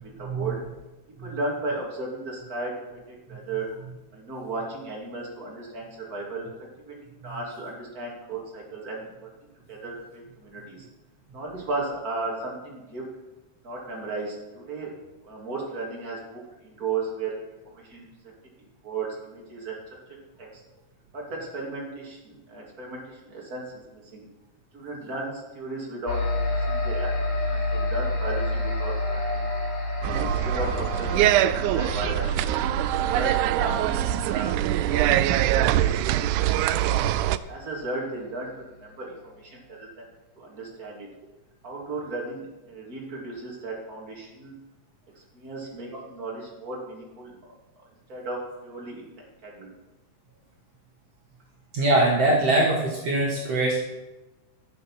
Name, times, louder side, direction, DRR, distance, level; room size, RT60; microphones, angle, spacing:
voice 1, 0.0-0.6 1.2-2.7 3.3-3.7 4.1-6.5 7.0-9.0 9.7-10.8 11.3-13.0 13.6-14.9 15.2-17.3 17.7-18.0 18.8-19.7 21.1-23.0 23.3-23.6 23.9-24.2 24.7-26.2 26.7-27.1 27.5-29.4 30.1-32.3 33.0-34.5 34.9-35.9 36.3-36.4 36.7-37.0 37.5-38.5 38.8-39.1 39.4-39.9 40.4-41.1 41.6-44.5 45.3-47.3 48.1-49.0 49.4-49.7, right 3 dB, 30° right, -3 dB, 3.2 m, -35 dB
sound 1, 26.1-37.9, left 2 dB, 60° left, 4.9 m, -30 dB
sound 2, 30.0-37.4, right 13 dB, 90° right, 2.0 m, -23 dB
voice 2, 51.7-53.8, right 2 dB, 60° right, -4 dB, 2.7 m, -22 dB
13.5 x 7.5 x 5.9 m, 1.0 s
omnidirectional pair, 3.4 m